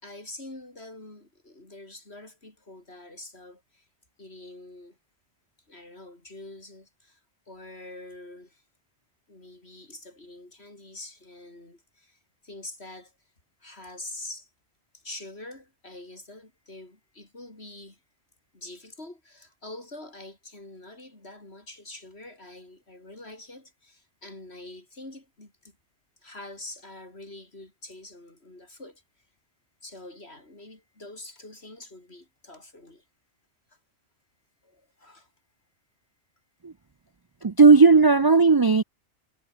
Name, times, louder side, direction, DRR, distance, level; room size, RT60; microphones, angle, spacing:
voice 1, 0.0-3.9 4.2-5.0 5.7-7.2 7.5-8.6 9.3-13.1 13.6-14.5 14.9-18.0 18.5-25.8 26.2-29.0 29.8-33.0 33.7-33.8 34.6-35.3, left 2 dB, 65° left, 5.7 m, -45 dB
voice 2, 37.4-38.8, right 4 dB, 30° right, 0.4 m, -15 dB
omnidirectional pair, 1.2 m